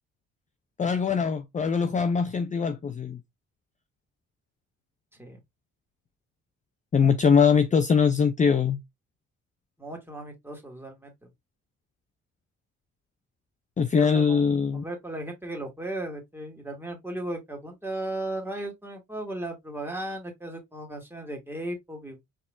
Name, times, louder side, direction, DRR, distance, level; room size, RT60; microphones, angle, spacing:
voice 1, 0.8-3.2 6.9-8.8 13.8-14.8, left 6 dB, 25° left, 0.5 m, -22 dB
voice 2, 9.8-11.3 13.9-14.4 14.7-22.2, right 1 dB, 5° right, 2.0 m, -36 dB
4.8 x 3.7 x 2.5 m
cardioid pair, 90°, 30 cm